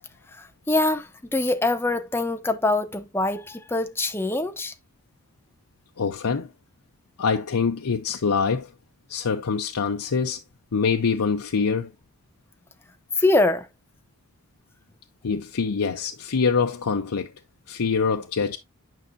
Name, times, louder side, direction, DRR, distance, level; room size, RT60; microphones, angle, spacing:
voice 1, 0.3-4.7 13.2-13.7, left 2 dB, 10° left, 0.7 m, -24 dB
voice 2, 6.0-6.5 7.2-8.7 9.1-10.4 10.7-11.9 15.2-17.3 17.7-18.6, left 5 dB, 90° left, 0.6 m, -24 dB
9.2 x 5.5 x 2.6 m
head